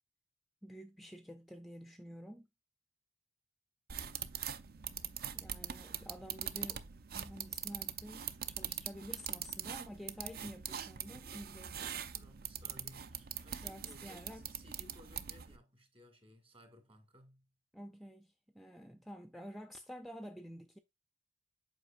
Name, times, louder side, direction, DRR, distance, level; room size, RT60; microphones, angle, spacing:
voice 1, 0.6-2.5 5.3-12.0 13.6-14.5 17.7-20.8, equal, ahead, 0.4 m, -50 dB
sound 1, 3.9-15.6, right 9 dB, 55° right, 0.5 m, -43 dB
voice 2, 4.1-4.6 12.1-17.5, equal, 30° right, 1.8 m, -60 dB
8.0 x 5.0 x 2.4 m
head